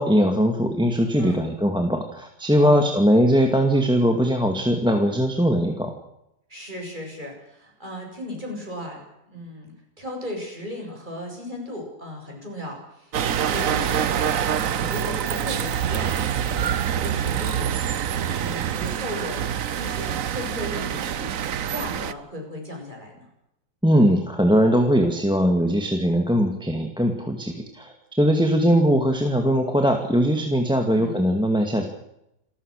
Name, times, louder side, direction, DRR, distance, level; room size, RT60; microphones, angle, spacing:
voice 1, 0.0-5.9 23.8-31.8, equal, ahead, 4 dB, 2.1 m, -20 dB
voice 2, 1.2-1.5 2.6-2.9 6.5-9.0 9.3-16.1 16.4-17.9 18.2-21.3 21.7-23.3 30.9-31.2, left 1 dB, 25° right, 0 dB, 8.0 m, -36 dB
sound 1, 13.1-22.1, right 9 dB, 55° right, 1.1 m, -26 dB
28.5 x 14.5 x 6.6 m, 0.82 s
omnidirectional pair, 2.0 m